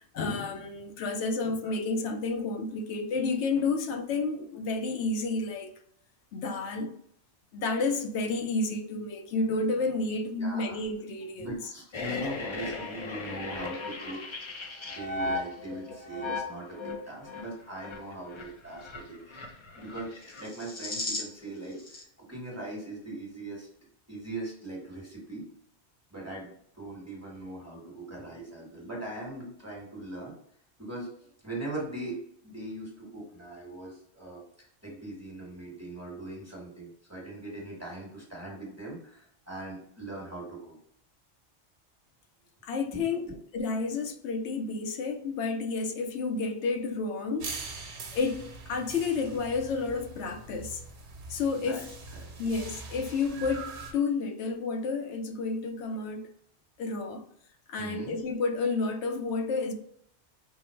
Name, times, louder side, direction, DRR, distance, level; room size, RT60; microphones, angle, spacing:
voice 1, 0.0-5.8 6.3-6.9 7.5-11.6 42.6-43.3 43.5-47.5 48.1-50.8 51.3-51.9 52.4-56.3 56.8-57.2 57.7-59.7, left 3 dB, 85° left, 0.9 m, -30 dB
voice 2, 10.3-10.8 11.4-14.2 14.9-19.5 19.7-20.1 20.4-23.7 24.1-25.4 26.1-30.3 30.8-34.4 34.8-40.8 42.9-43.3 51.6-51.8 52.1-52.2 57.8-58.1, right 2 dB, 15° right, 1.2 m, -40 dB
sound 1, 11.9-21.5 21.7-22.0, left 3 dB, 40° left, 0.4 m, -37 dB
sound 2, 47.4-53.9, right 4 dB, 75° right, 1.0 m, -42 dB
3.7 x 2.0 x 4.3 m
omnidirectional pair, 1.1 m